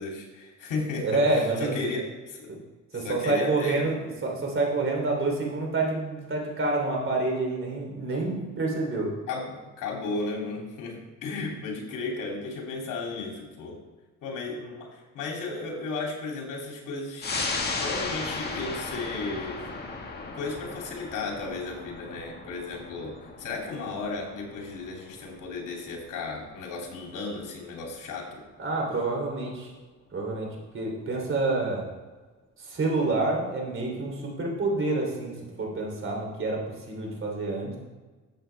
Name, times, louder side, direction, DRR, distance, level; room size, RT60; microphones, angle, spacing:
voice 1, 0.0-2.5 3.0-3.9 8.3-8.5 9.3-13.8 14.2-17.4 17.8-19.6 20.3-28.4, left 3 dB, 80° left, 0 dB, 3.0 m, -34 dB
voice 2, 1.0-1.9 2.5-2.6 2.9-9.1 28.6-29.7 30.1-31.9 32.6-37.8, right 2 dB, 40° right, 0 dB, 3.3 m, -28 dB
sound 1, 17.2-28.2 28.6-28.7, left 3 dB, 30° left, 1.8 m, -36 dB
13.0 x 7.7 x 3.4 m, 1.3 s
cardioid pair, 105°, 31 cm